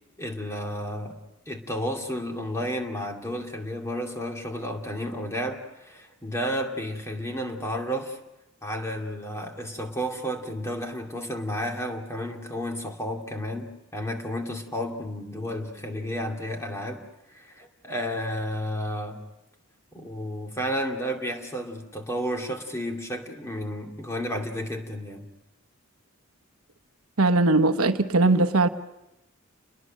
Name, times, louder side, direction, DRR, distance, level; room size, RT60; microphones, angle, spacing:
voice 1, 0.2-1.2 1.5-8.2 8.6-17.0 17.3-19.2 19.9-25.3, equal, 15° left, 2.5 m, -32 dB
voice 2, 27.2-28.7, right 2 dB, 85° right, 1.1 m, -20 dB
29.5 x 21.5 x 6.5 m
head